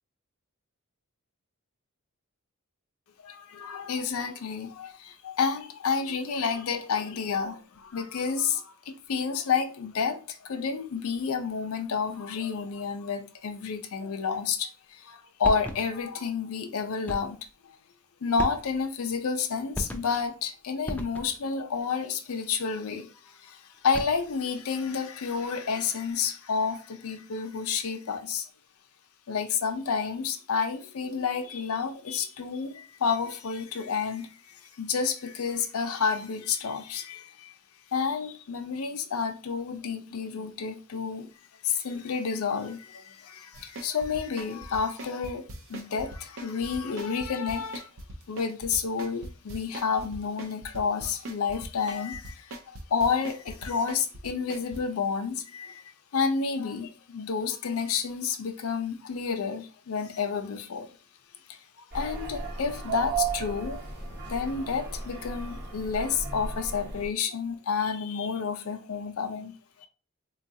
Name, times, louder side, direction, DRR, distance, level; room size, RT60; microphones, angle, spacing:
voice 1, 3.2-17.4 17.6-17.8 18.2-28.5 29.3-37.5 37.9-41.3 41.6-47.9 48.3-55.8 56.1-61.0 61.5-63.8 64.3-69.5 69.8-69.9, left 5 dB, 70° left, 0.5 m, -30 dB
sound 1, 15.4-16.1 17.1-17.5 18.4-19.0 19.7-20.3 20.9-21.5 23.7-24.4, equal, 5° left, 0.3 m, -36 dB
sound 2, 43.5-54.8, right 1 dB, 60° right, 0.5 m, -41 dB
sound 3, 61.9-67.1, right 5 dB, 45° right, 0.9 m, -34 dB
3.7 x 2.3 x 2.6 m
head